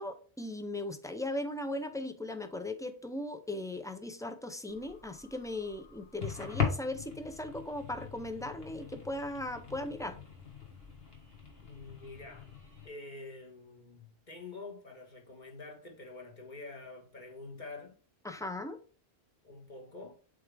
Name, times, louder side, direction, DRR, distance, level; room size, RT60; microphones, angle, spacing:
voice 1, 0.0-10.2 18.2-18.8, left 1 dB, 5° left, 0.3 m, -38 dB
sound 1, 4.7-12.9, left 7 dB, 70° left, 1.8 m, -40 dB
voice 2, 11.6-12.5 12.8-18.0 19.4-20.1, left 3 dB, 50° left, 1.6 m, -47 dB
8.0 x 3.5 x 3.3 m
omnidirectional pair, 1.0 m